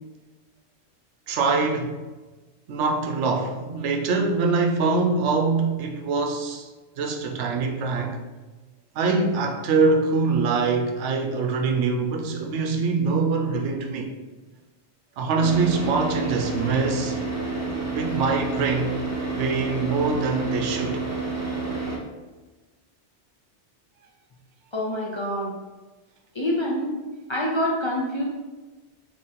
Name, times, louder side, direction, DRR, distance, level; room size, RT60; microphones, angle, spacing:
voice 1, 1.3-2.0 2.7-6.7 7.0-8.2 9.0-14.1 15.2-17.2 17.9-18.9 19.4-21.0, right 4 dB, 85° right, 4 dB, 0.9 m, -24 dB
Car / Idling, 15.4-22.0, right 3 dB, 25° right, 0.4 m, -29 dB
voice 2, 24.7-25.5 26.3-27.0 27.3-28.2, left 1 dB, 35° left, -3 dB, 0.5 m, -26 dB
3.7 x 2.9 x 4.1 m, 1.2 s
omnidirectional pair, 1.2 m